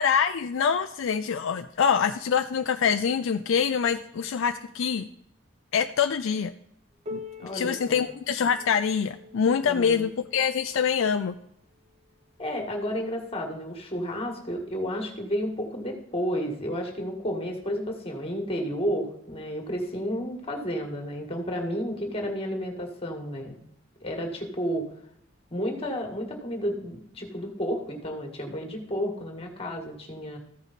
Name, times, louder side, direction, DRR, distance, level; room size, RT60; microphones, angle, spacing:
voice 1, 0.0-5.1 5.7-6.5 7.1-11.4, left 7 dB, 70° left, 8 dB, 0.4 m, -25 dB
Piano, 7.0-12.4 13.2-13.3 13.8-13.9 14.7-14.8 15.8-15.9, left 3 dB, 30° right, 1.1 m, -45 dB
voice 2, 7.4-8.0 9.6-10.1 12.4-23.6 24.0-24.8 25.5-30.4, equal, 30° left, 3 dB, 1.7 m, -31 dB
14.5 x 5.0 x 4.1 m, 0.72 s
head